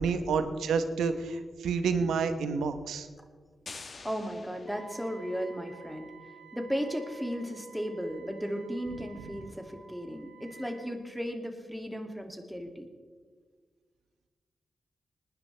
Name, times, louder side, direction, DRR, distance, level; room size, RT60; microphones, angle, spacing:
voice 1, 0.0-3.1, right 5 dB, 85° right, 9 dB, 0.9 m, -29 dB
sound 1, 3.7-5.5, left 4 dB, 55° left, 1.4 m, -47 dB
voice 2, 4.0-6.1 6.5-12.9, equal, ahead, 4 dB, 2.4 m, -35 dB
Wind instrument woodwind instrument, 4.7-10.9, right 4 dB, 40° right, 4.0 m, -52 dB
20.0 x 11.0 x 3.4 m, 1.5 s
supercardioid pair, 40°, 0 cm